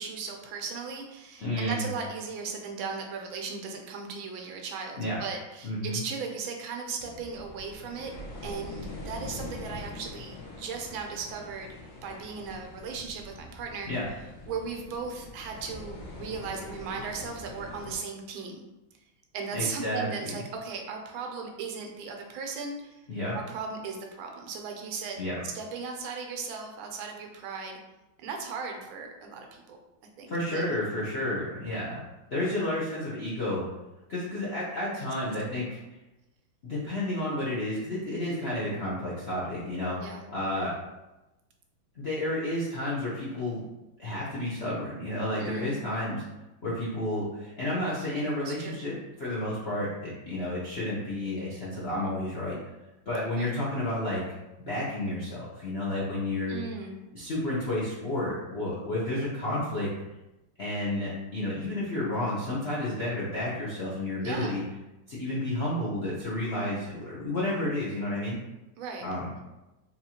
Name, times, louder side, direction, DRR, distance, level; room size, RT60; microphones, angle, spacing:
voice 1, 0.0-8.1 8.4-11.7 12.0-13.9 14.5-18.6 19.3-23.0 23.3-25.2 25.5-27.8 28.2-29.8 30.2-30.7 34.8-35.1 40.0-40.2 45.4-45.9 48.4-48.8 53.4-53.5 56.5-57.0 64.2-64.6 68.8-69.1, right 5 dB, 85° right, 3 dB, 1.4 m, -37 dB
voice 2, 1.4-1.9 5.0-5.2 5.6-6.0 13.8-14.1 19.5-20.4 23.1-23.4 25.2-25.4 30.3-32.0 32.3-33.6 34.1-35.8 36.6-40.7 42.0-43.6 44.0-46.2 46.6-52.5 53.1-54.2 54.6-56.6 57.1-59.9 60.6-64.6 65.1-68.4 69.0-69.3, left 1 dB, 60° left, -8 dB, 0.6 m, -31 dB
sound 1, 7.0-18.0, left 2 dB, 80° left, 1.7 m, -43 dB
4.3 x 2.9 x 2.8 m, 1.0 s
omnidirectional pair, 2.2 m